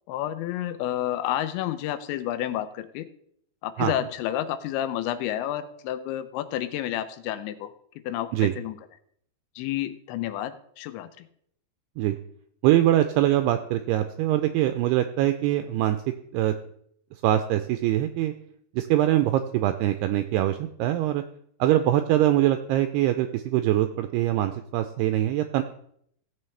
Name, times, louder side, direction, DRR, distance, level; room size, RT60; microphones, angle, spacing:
voice 1, 0.1-3.1 3.6-7.7 8.0-8.8 9.6-11.3, left 12 dB, 90° left, 11 dB, 3.0 m, -30 dB
voice 2, 12.6-16.0 16.3-16.5 17.2-18.3 18.7-21.2 21.6-25.6, right 13 dB, 85° right, 8 dB, 2.3 m, -23 dB
16.0 x 7.5 x 3.3 m, 0.68 s
omnidirectional pair, 5.1 m